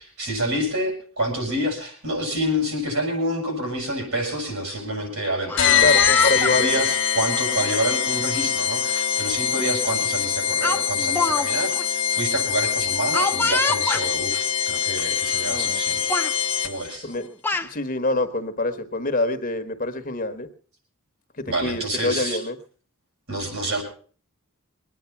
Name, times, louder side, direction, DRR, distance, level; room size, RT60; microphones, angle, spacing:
voice 1, 0.0-16.1 16.6-17.1 21.5-22.4 23.3-23.8, right 1 dB, 70° right, 2 dB, 7.6 m, -28 dB
Speech, 5.4-6.6 7.5-7.7 9.0-9.1 9.4-9.7 10.6-11.5 11.7-11.8 13.1-14.1 15.0-15.1 15.4-15.8 16.1-16.3 17.1-17.7, left 3 dB, 10° left, 0.9 m, -25 dB
sound 1, 5.6-17.0, left 8 dB, 55° left, 1.1 m, -23 dB
voice 2, 5.8-6.8 17.0-17.3 17.6-20.5 21.4-22.6, left 2 dB, 40° left, 9 dB, 1.2 m, -25 dB
23.0 x 9.6 x 5.9 m, 0.43 s
head